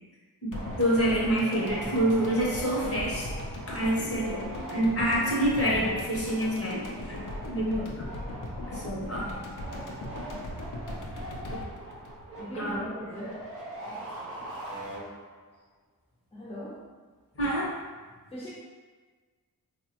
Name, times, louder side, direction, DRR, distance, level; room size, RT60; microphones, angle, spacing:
voice 1, 0.4-3.3 3.7-4.4 4.7-7.2 7.5-8.0 8.7-9.3 12.5-12.8 17.4-17.7, right 1 dB, 40° left, -6 dB, 0.9 m, -27 dB
sound 1, 0.5-12.9 13.1-13.2, left 1 dB, 60° left, 0.6 m, -39 dB
sound 2, 0.5-15.5, right 1 dB, 40° right, 0.7 m, -42 dB
voice 2, 12.4-13.4 16.3-16.8 18.3-18.5, equal, 15° left, -8 dB, 0.7 m, -38 dB
3.2 x 2.1 x 2.9 m, 1.4 s
wide cardioid pair, 85°, 36 cm